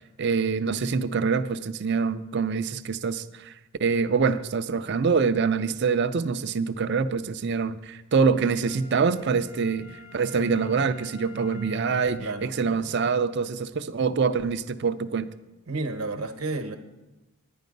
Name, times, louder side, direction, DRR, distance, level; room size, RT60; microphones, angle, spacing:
voice 1, 0.0-3.5 3.8-15.3, right 5 dB, 50° right, 11 dB, 0.5 m, -25 dB
Wind instrument woodwind instrument, 8.6-12.9 13.4-13.5, left 6 dB, 90° left, 2.3 m, -49 dB
voice 2, 12.2-12.8 15.7-16.8, right 2 dB, 75° right, 8 dB, 1.0 m, -32 dB
10.5 x 10.0 x 5.2 m, 1.0 s
head